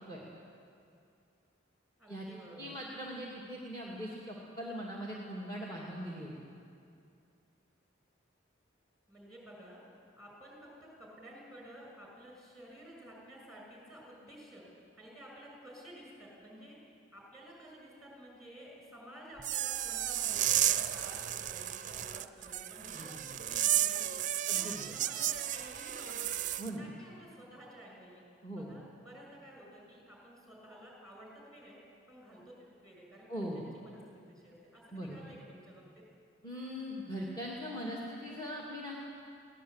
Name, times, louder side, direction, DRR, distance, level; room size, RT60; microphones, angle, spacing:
voice 1, 2.0-2.7 9.1-9.8 10.1-14.6 15.0-16.8 17.1-26.4 26.7-28.2 28.5-31.8 32.1-36.0, equal, ahead, -2 dB, 6.0 m, -52 dB
voice 2, 2.6-6.3 22.9-23.3 24.5-24.9 26.6-26.9 28.4-28.7 33.3-33.6 34.9-35.2 36.4-38.9, equal, 20° left, -4 dB, 2.5 m, -40 dB
sound 1, 19.4-26.7, right 12 dB, 40° right, 0.5 m, -33 dB
22.0 x 17.0 x 8.2 m, 2.5 s
head